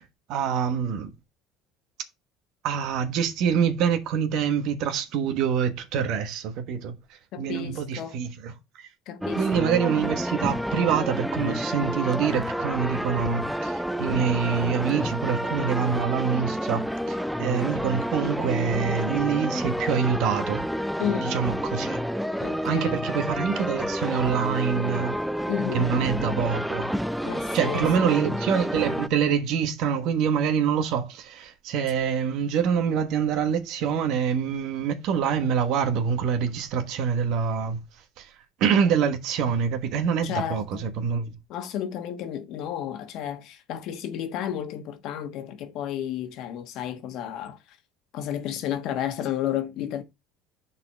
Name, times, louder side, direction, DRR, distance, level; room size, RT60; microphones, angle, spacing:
voice 1, 0.3-1.1 2.6-6.9 7.4-8.9 9.3-16.8 17.1-20.6 21.2-22.0 22.6-25.1 25.7-26.9 27.5-37.8 38.2-38.3 38.6-41.3, right 7 dB, 65° right, 1.3 m, -25 dB
voice 2, 7.3-8.2 9.1-9.6 21.0-21.4 22.4-23.0 25.5-25.9 27.2-28.1 40.2-40.9 41.5-47.6 48.1-50.0, left 10 dB, 60° left, 1.3 m, -32 dB
sound 1, 9.2-29.1, equal, ahead, 0.4 m, -29 dB
5.5 x 4.2 x 5.7 m
supercardioid pair, 105°, 0 cm